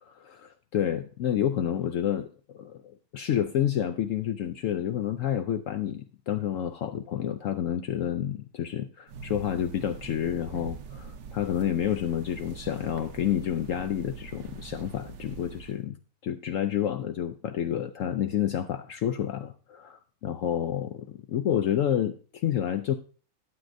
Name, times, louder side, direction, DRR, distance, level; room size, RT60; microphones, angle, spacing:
voice 1, 0.1-2.3 2.5-16.0 16.2-22.2 22.4-22.9, left 10 dB, 75° left, 8 dB, 0.7 m, -29 dB
sound 1, 9.1-15.8, right 5 dB, 65° right, 1.3 m, -43 dB
12.5 x 7.8 x 2.6 m, 0.40 s
omnidirectional pair, 1.9 m